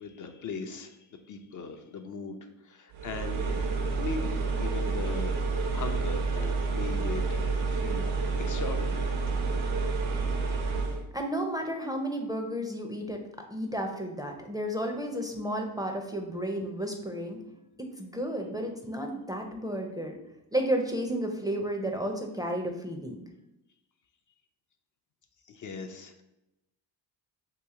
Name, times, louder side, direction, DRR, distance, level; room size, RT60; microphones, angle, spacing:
voice 1, 0.0-3.5 4.0-5.4 5.7-7.4 7.7-8.1 8.4-9.3 25.4-26.2, left 4 dB, 45° left, 6 dB, 0.5 m, -39 dB
sound 1, 2.9-11.0, right 4 dB, 75° right, 0.8 m, -29 dB
voice 2, 11.1-13.2 13.5-17.4 17.8-20.1 20.5-23.1, equal, 10° right, 2 dB, 0.5 m, -32 dB
2.9 x 2.7 x 3.6 m, 0.90 s
supercardioid pair, 55°, 47 cm